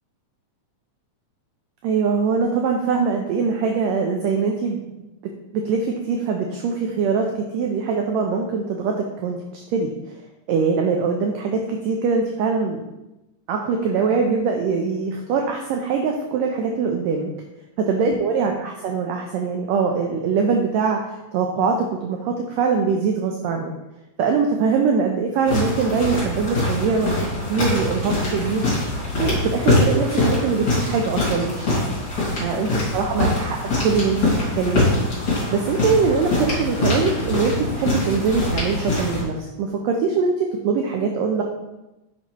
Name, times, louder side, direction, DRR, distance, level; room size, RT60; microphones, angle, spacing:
voice 1, 1.8-5.1 5.5-9.9 10.5-12.8 13.5-17.3 17.9-21.0 21.3-23.7 24.2-28.7 29.1-31.8 32.4-32.7 32.9-33.6 33.8-34.3 34.5-35.1 35.5-41.4, right 5 dB, 80° right, 2 dB, 1.6 m, -22 dB
sound 1, 25.4-39.2, left 2 dB, 45° left, 2.8 m, -23 dB
6.5 x 5.7 x 3.0 m, 0.97 s
omnidirectional pair, 3.5 m